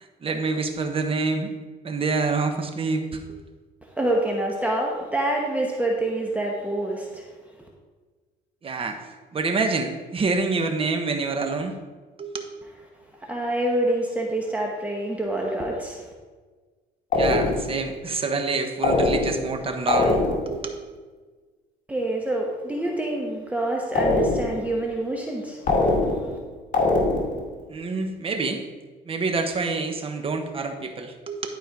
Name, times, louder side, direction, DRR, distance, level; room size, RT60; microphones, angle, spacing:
voice 1, 0.2-1.5 1.8-3.0 8.6-9.0 9.3-11.8 12.2-12.3 17.1-20.8 27.7-28.6 29.1-31.4, right 4 dB, 35° right, 5 dB, 1.1 m, -27 dB
voice 2, 3.9-7.2 13.2-16.1 21.9-26.3, right 1 dB, 10° right, -1 dB, 1.1 m, -27 dB
sound 1, 17.1-17.8 18.8-19.5 19.9-20.6 23.9-24.7 25.7-26.4 26.7-27.5, left 2 dB, 50° left, 2.0 m, -22 dB
11.5 x 4.5 x 4.7 m, 1.4 s
cardioid pair, 110°, 17 cm